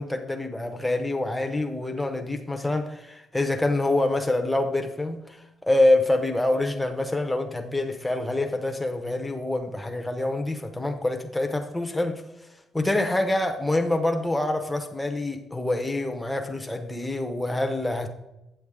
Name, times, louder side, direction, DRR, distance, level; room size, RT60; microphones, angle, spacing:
voice 1, 0.0-12.2 12.7-18.1, left 2 dB, 5° left, 5 dB, 0.7 m, -26 dB
8.0 x 7.8 x 3.6 m, 0.95 s
cardioid pair, 175°, 0 cm